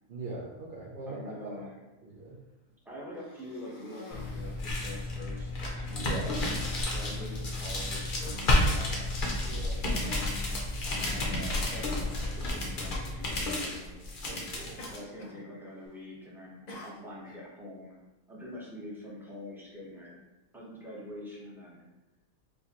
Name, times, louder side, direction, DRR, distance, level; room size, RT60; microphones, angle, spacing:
voice 1, 0.1-1.6 2.0-2.4 6.0-6.3 9.4-9.9 14.3-14.8, right 2 dB, 65° right, -3 dB, 0.5 m, -41 dB
voice 2, 1.1-1.7 2.8-9.1 9.9-13.9 14.9-17.9 18.3-20.2 20.5-21.8, left 1 dB, ahead, -6 dB, 0.5 m, -45 dB
Cough, 3.1-4.8 5.5-5.6 6.0-6.5 7.2-7.5 7.9-9.8 10.7-10.8 12.7-12.9 13.3-13.6 14.8-15.5 15.7-16.1 16.7-17.4, left 1 dB, 75° left, 0.3 m, -50 dB
sound 1, 4.1-15.0, left 1 dB, 50° left, 0.7 m, -31 dB
4.5 x 2.2 x 2.8 m, 1.0 s
omnidirectional pair, 1.5 m